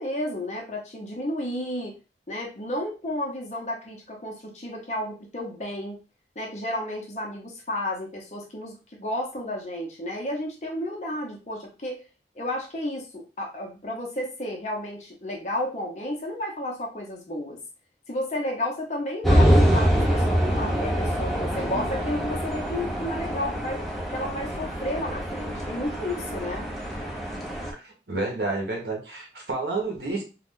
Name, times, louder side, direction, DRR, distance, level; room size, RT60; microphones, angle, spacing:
voice 1, 0.0-1.9 2.3-6.0 6.4-12.0 12.4-17.6 18.1-23.8 24.1-26.7, left 1 dB, 40° left, 0 dB, 0.7 m, -32 dB
sound 1, 19.2-27.7, equal, ahead, 0.5 m, -25 dB
voice 2, 27.8-30.2, right 3 dB, 70° right, 1 dB, 1.0 m, -30 dB
2.5 x 2.3 x 3.5 m, 0.32 s
head